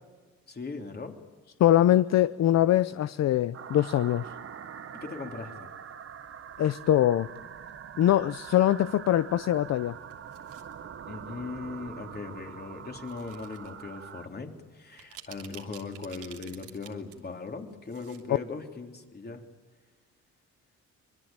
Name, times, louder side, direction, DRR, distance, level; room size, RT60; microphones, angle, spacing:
voice 1, 0.5-1.1 4.9-5.7 11.1-19.4, left 4 dB, 30° left, 3 dB, 3.3 m, -39 dB
voice 2, 1.6-4.3 6.6-7.3 8.0-10.0, left 12 dB, 60° left, 14 dB, 0.7 m, -23 dB
sound 1, 3.5-14.3, right 8 dB, 45° right, 1.1 m, -44 dB
sound 2, 9.9-10.7 11.6-11.8 13.0-13.7 14.1-14.2 14.8-17.1 17.5-18.2 18.5-18.6, right 10 dB, 90° right, 3.1 m, -49 dB
25.0 x 22.0 x 9.0 m, 1.5 s
cardioid pair, 90°, 30 cm